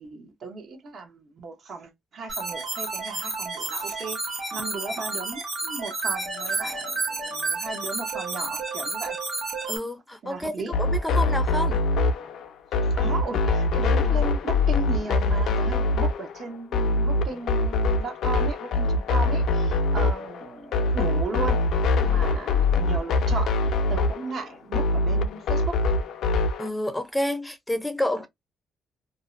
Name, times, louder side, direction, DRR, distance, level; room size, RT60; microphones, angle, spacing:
voice 1, 0.0-9.2 10.2-10.7 13.0-21.6 22.0-25.9, right 3 dB, 60° right, 0.8 m, -36 dB
sound 1, 2.3-9.8, right 3 dB, 40° right, 1.2 m, -31 dB
voice 2, 9.7-11.8 26.6-28.3, left 1 dB, 10° left, 0.5 m, -29 dB
sound 2, 10.7-26.7, left 2 dB, 75° left, 0.4 m, -23 dB
2.6 x 2.1 x 2.4 m
cardioid pair, 90°, 0 cm